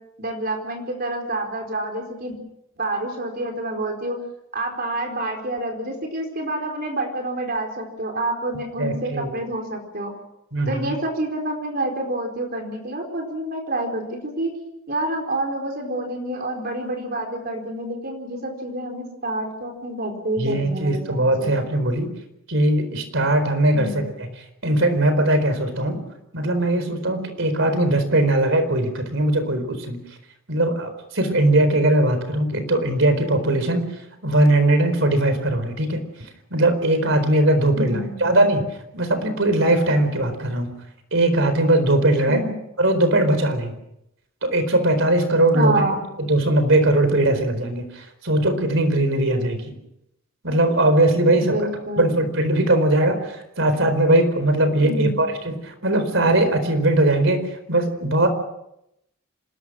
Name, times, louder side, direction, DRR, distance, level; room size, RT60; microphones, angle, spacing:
voice 1, 0.2-2.4 2.8-4.2 4.5-10.1 10.7-14.5 14.9-21.5 23.7-24.0 37.8-38.4 42.3-42.6 45.5-46.0 51.3-52.1 54.8-55.3, right 1 dB, 50° right, 3 dB, 4.3 m, -28 dB
voice 2, 8.8-9.3 10.5-10.9 20.4-22.1 22.5-24.1 24.6-26.0 26.3-30.0 30.5-33.9 34.2-36.0 36.5-38.7 38.9-40.7 41.1-42.4 42.8-43.7 44.4-45.8 46.3-49.6 50.4-51.6 52.0-58.3, right 1 dB, 65° right, 9 dB, 4.4 m, -20 dB
27.0 x 19.5 x 6.3 m, 0.83 s
head